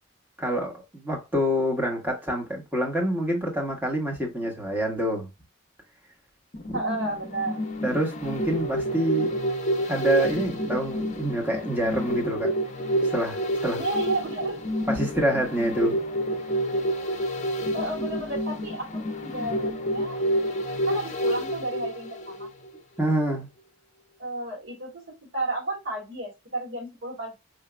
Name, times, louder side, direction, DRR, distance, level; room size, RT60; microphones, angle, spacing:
voice 1, 0.4-5.3 6.7-6.8 7.8-9.3 9.9-12.5 13.1-13.8 14.9-16.0 23.0-23.5, equal, 10° right, 1.2 m, -26 dB
sound 1, 6.5-22.8 23.1-23.2, equal, 35° left, 0.6 m, -29 dB
voice 2, 6.7-7.6 13.8-14.6 17.7-20.2 20.8-22.5 24.2-24.9 25.3-27.3, right 2 dB, 75° right, 2.0 m, -32 dB
4.9 x 2.7 x 2.2 m
head